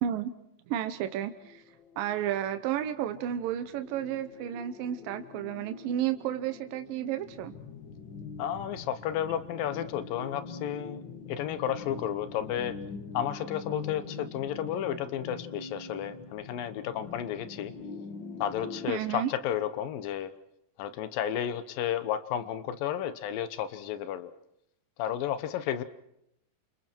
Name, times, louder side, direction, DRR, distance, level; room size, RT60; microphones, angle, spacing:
voice 1, 0.7-1.6 2.0-7.5 18.9-19.3, right 10 dB, 85° right, 9 dB, 2.7 m, -32 dB
sound 1, 1.0-18.9, left 4 dB, 45° left, 1.6 m, -44 dB
voice 2, 8.4-12.8 13.1-17.7 18.4-20.3 20.8-24.3 25.0-25.8, left 10 dB, 90° left, 12 dB, 2.9 m, -32 dB
29.5 x 27.5 x 4.6 m, 0.79 s
omnidirectional pair, 3.9 m